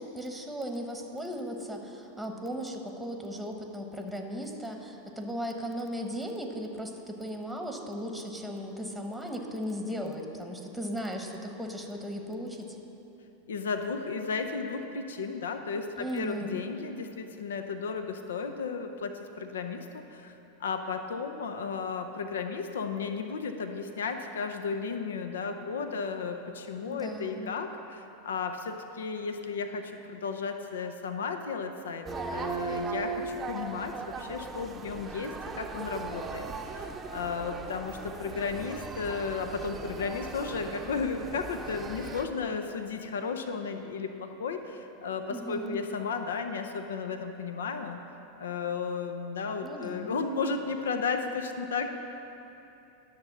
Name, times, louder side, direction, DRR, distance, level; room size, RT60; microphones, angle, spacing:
voice 1, 0.0-12.8 16.0-16.6 26.9-27.6 45.3-45.8 49.6-50.1, equal, ahead, 3 dB, 1.1 m, -37 dB
voice 2, 13.5-20.3 20.6-48.0 48.4-51.9, left 5 dB, 85° left, 6 dB, 0.6 m, -34 dB
sound 1, 32.1-42.3, right 4 dB, 20° right, 0.6 m, -38 dB
10.5 x 6.7 x 6.0 m, 3.0 s
hypercardioid pair, 110°, 0 cm